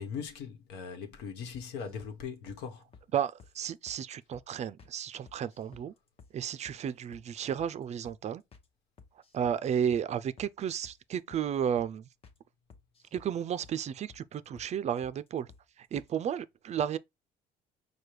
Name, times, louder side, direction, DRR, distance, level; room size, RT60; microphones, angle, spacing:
voice 1, 0.0-2.8, left 6 dB, 90° left, 1.1 m, -40 dB
sound 1, 1.5-2.2 2.5-2.6 2.9-3.1 3.4-3.6 3.9-4.0 4.3-4.5 4.8-4.9 5.3-5.9 6.2-6.3 6.6-6.8 7.1-7.3 7.6-7.7 8.0-8.2 8.5-8.7 9.0-9.6 9.9-10.1 10.4-10.5 10.8-11.0 11.3-11.5 11.8-11.9 12.2-12.4 12.7-13.3 13.6-13.8 14.1-14.3 14.6-14.7 15.0-15.2 15.5-15.6 15.9-16.1, left 5 dB, 35° left, 0.9 m, -55 dB
voice 2, 3.1-5.9 6.3-8.4 9.3-12.1 13.1-15.5 15.8-17.0, right 8 dB, 40° right, 0.4 m, -33 dB
5.0 x 2.2 x 4.5 m
cardioid pair, 110°, 17 cm